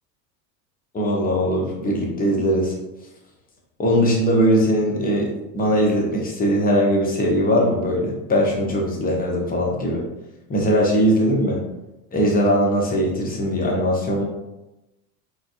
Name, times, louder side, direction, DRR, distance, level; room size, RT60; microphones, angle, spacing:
voice 1, 0.9-2.7 3.8-10.0 10.5-11.6 12.1-14.2, equal, 20° left, -2 dB, 0.9 m, -20 dB
3.7 x 3.4 x 2.5 m, 0.97 s
figure-of-eight pair, 70°, 50 cm